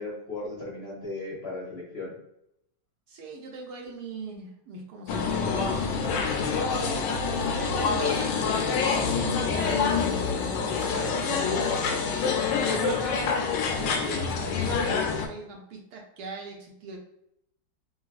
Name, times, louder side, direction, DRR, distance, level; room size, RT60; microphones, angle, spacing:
voice 1, 0.0-2.1, left 2 dB, 50° left, -5 dB, 0.8 m, -36 dB
voice 2, 3.1-6.2 7.7-10.4 10.7-11.7 12.6-17.0, right 3 dB, 70° right, 0 dB, 1.2 m, -40 dB
sound 1, 5.1-15.3, left 5 dB, 90° left, 1.3 m, -26 dB
3.8 x 2.3 x 2.4 m, 0.78 s
omnidirectional pair, 1.9 m